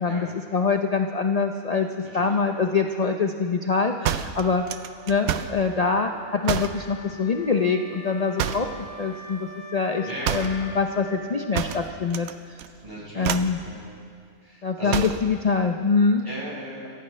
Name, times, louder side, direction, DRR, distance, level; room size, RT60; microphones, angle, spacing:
voice 1, 0.0-1.9 2.1-4.6 5.1-8.7 9.0-12.6 13.2-13.6 14.6-16.2, left 5 dB, 60° left, 4 dB, 0.4 m, -24 dB
voice 2, 2.0-2.4 5.9-6.1 8.5-8.8 10.0-10.7 12.8-13.3 13.6-13.9 14.4-15.0 16.2-16.9, right 1 dB, 30° right, -7 dB, 5.5 m, -37 dB
sound 1, 4.0-5.6 6.4-6.8 8.4-8.8 10.2-10.6 11.5-12.3 12.6-12.9 13.2-13.6 14.9-15.3, right 9 dB, 80° right, 1.1 m, -28 dB
Wind instrument woodwind instrument, 4.6-12.2, right 2 dB, 60° right, 2.0 m, -42 dB
27.5 x 15.0 x 3.3 m, 2.2 s
omnidirectional pair, 1.5 m